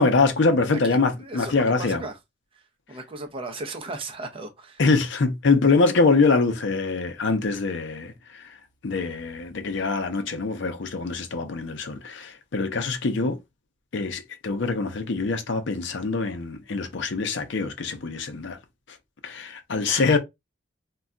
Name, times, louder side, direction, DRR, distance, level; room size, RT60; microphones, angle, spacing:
voice 1, 0.0-2.0 4.8-8.5 8.8-13.4 13.9-18.6 19.2-20.2, left 3 dB, 65° left, 0.6 m, -24 dB
voice 2, 0.8-2.2 2.5-2.6 2.9-4.8 19.9-20.2, right 2 dB, 30° right, 0.6 m, -36 dB
2.3 x 2.2 x 3.6 m
head